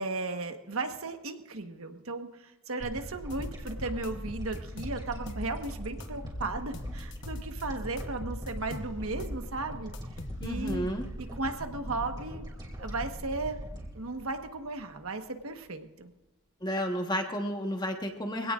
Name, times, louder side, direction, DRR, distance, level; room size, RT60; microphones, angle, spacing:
voice 1, 0.0-9.9 10.4-10.9 11.2-12.5 12.8-13.6 13.9-16.1, right 3 dB, 85° right, 6 dB, 1.3 m, -35 dB
sound 1, 2.8-15.3, equal, 20° right, 2.7 m, -41 dB
sound 2, 3.3-5.7 6.0-7.6 8.0-11.2, left 1 dB, 55° left, 1.0 m, -42 dB
voice 2, 10.4-11.1 16.6-18.5, equal, 20° left, 3 dB, 1.2 m, -31 dB
24.0 x 17.0 x 2.5 m, 1.0 s
head